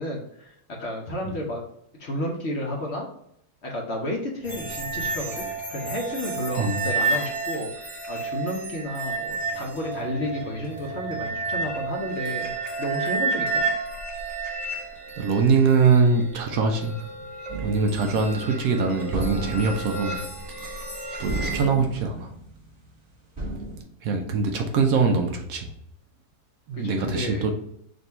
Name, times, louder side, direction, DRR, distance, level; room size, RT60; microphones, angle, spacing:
voice 1, 0.0-1.6 2.0-3.1 3.6-12.5 12.8-13.6 26.7-27.4, left 1 dB, 55° left, 0 dB, 0.9 m, -32 dB
sound 1, 4.4-21.6, right 3 dB, 45° right, 1.6 m, -31 dB
voice 2, 15.2-16.9 17.6-20.2 21.2-22.3 24.0-25.7 26.7-27.5, right 4 dB, 70° right, 3 dB, 1.0 m, -23 dB
sound 2, 17.5-18.7 19.1-21.0 21.3-22.9 23.4-23.8, right 2 dB, 20° right, 1.3 m, -33 dB
3.8 x 2.6 x 4.2 m, 0.74 s
omnidirectional pair, 1.7 m